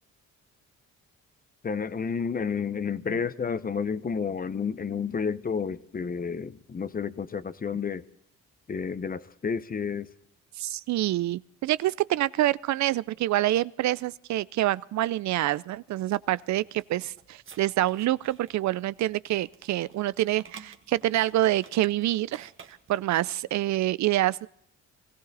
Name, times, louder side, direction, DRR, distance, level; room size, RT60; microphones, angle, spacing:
voice 1, 1.6-8.0 8.7-10.1, left 6 dB, 30° left, 0.7 m, -30 dB
voice 2, 10.6-24.5, right 15 dB, 65° right, 0.5 m, -27 dB
sound 1, 16.0-23.1, right 6 dB, 45° right, 1.5 m, -53 dB
20.0 x 15.5 x 4.1 m
cardioid pair, 90°, 30 cm